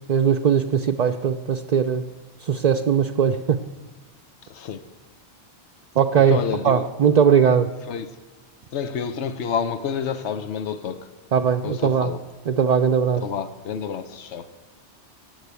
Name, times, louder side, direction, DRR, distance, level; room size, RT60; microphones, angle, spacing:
voice 1, 0.1-2.1 2.4-3.6 5.9-6.4 6.6-7.7 11.3-12.1 12.5-13.2, right 7 dB, 45° right, 5 dB, 0.6 m, -19 dB
voice 2, 4.4-4.8 6.3-6.9 7.9-8.1 8.7-11.1 11.6-12.2 13.2-14.5, left 7 dB, 80° left, 10 dB, 1.1 m, -29 dB
15.5 x 10.0 x 8.2 m, 1.2 s
omnidirectional pair, 1.2 m